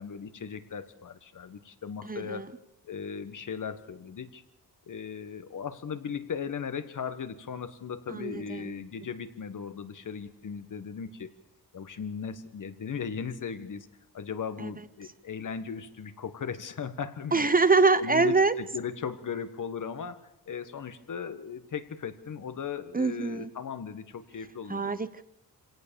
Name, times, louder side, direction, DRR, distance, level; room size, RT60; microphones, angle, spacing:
voice 1, 0.0-2.5 2.8-4.4 4.9-11.3 11.7-13.9 14.1-17.5 18.0-25.0, left 6 dB, 55° left, 11 dB, 1.6 m, -37 dB
voice 2, 2.0-2.5 8.1-8.7 14.6-14.7 17.3-18.5 22.9-23.5 24.7-25.2, right 4 dB, 25° right, 13 dB, 0.9 m, -25 dB
25.0 x 17.5 x 7.1 m, 0.79 s
cardioid pair, 100°, 36 cm